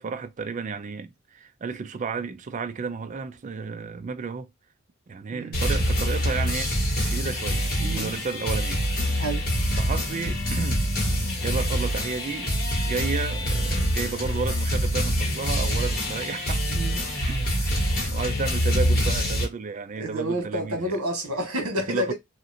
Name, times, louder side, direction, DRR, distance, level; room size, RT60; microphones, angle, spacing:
voice 1, 0.0-4.5 5.1-8.8 9.8-10.8 11.4-12.5 12.9-16.8 17.1-20.8 21.9-22.1, right 5 dB, 35° right, 0.3 m, -32 dB
sound 1, 5.5-19.4, equal, 45° left, 1.3 m, -25 dB
voice 2, 7.8-8.1 9.2-9.5 16.7-17.0 20.0-22.1, right 1 dB, 80° right, 1.3 m, -29 dB
2.8 x 2.5 x 2.6 m
head